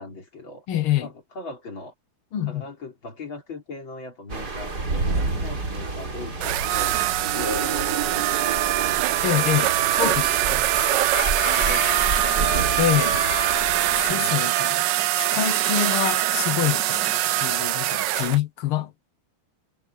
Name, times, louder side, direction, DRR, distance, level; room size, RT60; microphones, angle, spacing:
voice 1, 0.0-0.7 1.0-1.9 2.4-7.0 7.3-8.2 8.5-9.1 9.7-11.2 11.5-12.6 14.1-14.7, left 3 dB, 65° left, 5.1 m, -39 dB
voice 2, 0.7-1.1 2.3-2.6 9.2-10.7 12.8-13.2 13.9-14.9 15.2-19.1, left 11 dB, 85° left, 2.0 m, -26 dB
sound 1, 4.3-14.1, right 3 dB, 50° right, 4.0 m, -30 dB
sound 2, 6.4-18.4, right 15 dB, 75° right, 1.1 m, -23 dB
Chicken rooster, 10.8-13.7, left 2 dB, 30° left, 1.0 m, -30 dB
omnidirectional pair, 2.3 m